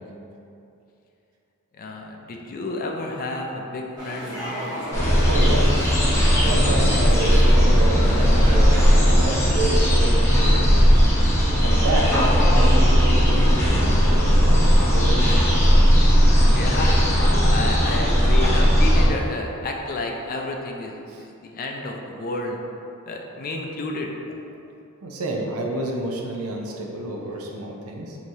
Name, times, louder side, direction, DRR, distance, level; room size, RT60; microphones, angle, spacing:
voice 1, 1.7-5.0 16.5-22.6 23.0-24.1, left 2 dB, 40° left, 1 dB, 0.4 m, -31 dB
sound 1, 4.0-9.4, equal, 20° right, 1.2 m, -33 dB
sound 2, 4.9-19.1, equal, 10° left, 0.7 m, -17 dB
voice 2, 5.3-5.7 6.4-11.0 11.6-12.1 12.5-14.6 14.9-15.6 21.1-21.2 25.0-28.2, right 2 dB, 80° right, 0 dB, 0.5 m, -29 dB
4.7 x 2.8 x 2.7 m, 2.7 s
head